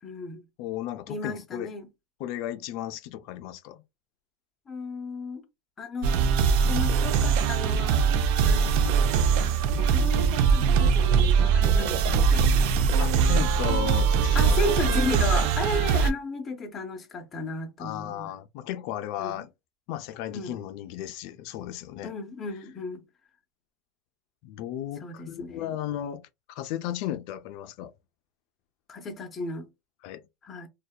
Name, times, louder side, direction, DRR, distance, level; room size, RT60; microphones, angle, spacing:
voice 1, 0.0-0.4 1.1-1.9 4.7-5.4 5.8-6.2 6.7-8.1 8.4-9.3 9.8-12.5 14.3-18.4 19.2-19.4 20.3-20.6 22.0-23.0 25.0-25.7 28.9-29.7 30.4-30.7, left 2 dB, 25° left, 0.6 m, -34 dB
voice 2, 0.6-1.7 2.2-3.8 13.0-15.1 17.8-19.5 19.9-22.1 24.4-27.9 30.0-30.2, left 12 dB, 65° left, 0.3 m, -35 dB
sound 1, 6.0-16.1, right 6 dB, 65° right, 0.4 m, -22 dB
2.7 x 2.1 x 2.2 m
supercardioid pair, 130°, 0 cm